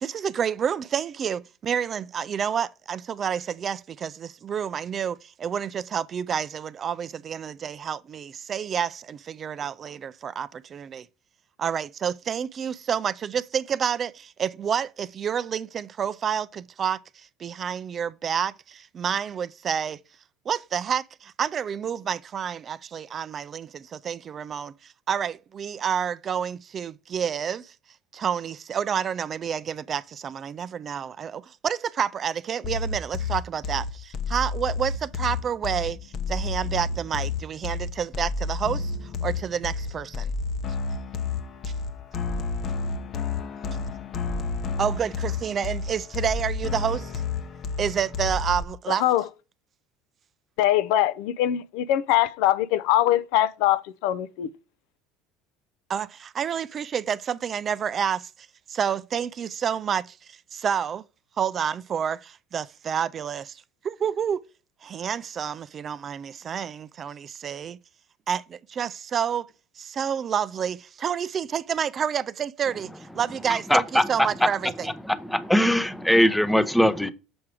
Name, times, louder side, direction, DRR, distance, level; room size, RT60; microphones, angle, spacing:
voice 1, 0.0-11.1 11.6-17.0 17.4-20.0 20.5-27.7 28.1-39.0 39.2-40.3 44.8-47.1 47.8-49.0 55.9-58.3 58.7-61.1 61.4-64.4 64.8-67.8 68.3-69.5 69.8-74.9, right 8 dB, 35° right, 0.4 m, -29 dB
sound 1, 32.6-48.6, left 4 dB, 45° left, 0.8 m, -30 dB
voice 2, 48.9-49.2 50.6-54.5, left 13 dB, 75° left, 0.5 m, -22 dB
voice 3, 73.7-74.1 74.8-77.1, equal, 5° left, 0.7 m, -21 dB
7.1 x 4.7 x 4.7 m
supercardioid pair, 100°, 0 cm